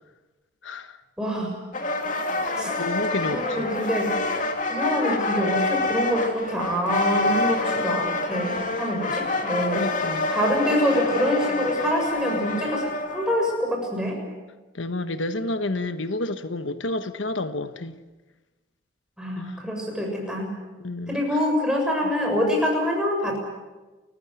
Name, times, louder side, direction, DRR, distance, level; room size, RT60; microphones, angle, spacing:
voice 1, 0.6-1.0 2.4-3.7 9.7-10.3 14.7-18.0 19.3-19.6 20.8-21.4, left 2 dB, 90° left, 1.3 m, -30 dB
voice 2, 1.2-1.6 2.6-2.7 3.3-4.2 4.7-9.8 10.3-14.2 19.2-20.5 21.1-23.4, equal, 5° right, 7.0 m, -25 dB
sound 1, 1.7-13.5, left 2 dB, 45° left, 2.7 m, -27 dB
30.0 x 15.5 x 9.4 m
head